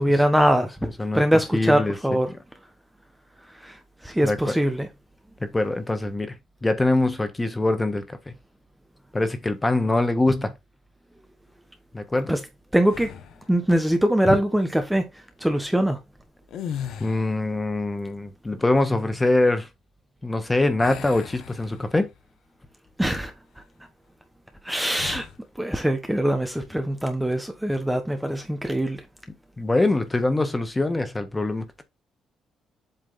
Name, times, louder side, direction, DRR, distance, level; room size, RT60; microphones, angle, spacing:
voice 1, 0.0-0.7 1.1-2.3 3.6-3.8 4.0-4.9 12.3-12.4 12.7-13.1 13.5-15.0 15.4-16.0 23.0-23.3 24.6-25.3 25.6-29.0, right 1 dB, 5° right, 1.0 m, -22 dB
voice 2, 0.8-1.2 1.5-2.0 4.2-4.5 5.4-6.3 6.6-8.3 9.1-10.5 11.9-12.4 14.2-14.4 17.0-19.7 20.2-22.1 29.6-31.8, left 2 dB, 20° left, 1.4 m, -23 dB
sound 1, 12.9-13.5 16.4-17.5 20.8-22.2 22.7-22.9 24.9-25.4, left 9 dB, 80° left, 1.0 m, -37 dB
7.9 x 3.3 x 4.0 m
cardioid pair, 90°, 0 cm